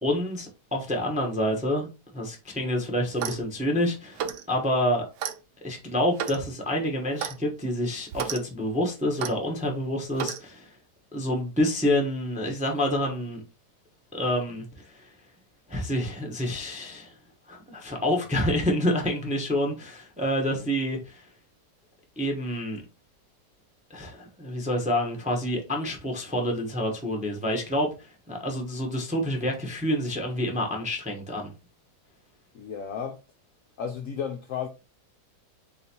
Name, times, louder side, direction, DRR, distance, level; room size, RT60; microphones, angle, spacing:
voice 1, 0.0-1.9 2.1-5.0 5.6-10.7 11.1-13.4 14.1-15.1 15.7-17.1 17.5-21.3 22.2-22.8 23.9-31.5, left 1 dB, 10° right, 0.5 m, -28 dB
Clock, 3.1-3.5 4.2-4.5 5.2-5.4 6.2-6.4 7.2-7.4 8.1-8.4 9.2-9.4 10.2-10.4, right 8 dB, 80° right, 1.2 m, -32 dB
voice 2, 32.5-33.2 33.8-34.7, left 7 dB, 70° left, 0.8 m, -33 dB
3.9 x 3.9 x 2.8 m
omnidirectional pair, 1.9 m